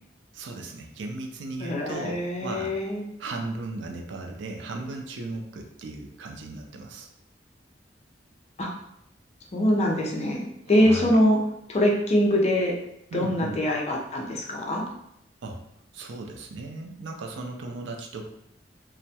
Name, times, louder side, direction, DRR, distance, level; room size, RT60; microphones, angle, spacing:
voice 1, 0.3-2.8 3.2-7.1 10.7-11.1 13.1-13.6 15.4-15.6 15.9-18.3, right 2 dB, 80° right, 3 dB, 0.4 m, -36 dB
voice 2, 1.6-3.1 8.6-8.7 9.5-11.4 11.7-12.7 13.1-14.8, equal, 35° left, 0 dB, 0.4 m, -23 dB
2.2 x 2.0 x 2.7 m, 0.78 s
head